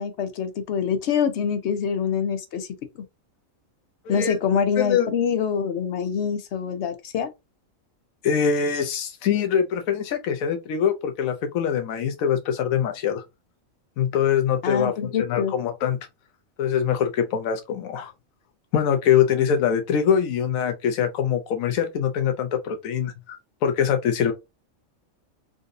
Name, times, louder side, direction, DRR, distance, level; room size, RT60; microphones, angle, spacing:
voice 1, 0.0-2.7 4.1-7.3 14.6-15.5, left 7 dB, 65° left, 0.8 m, -25 dB
voice 2, 4.1-4.4 4.8-5.1 8.2-13.2 14.0-16.0 16.6-18.1 18.7-24.3, left 8 dB, 90° left, 1.0 m, -23 dB
3.8 x 2.6 x 2.5 m
omnidirectional pair, 1.4 m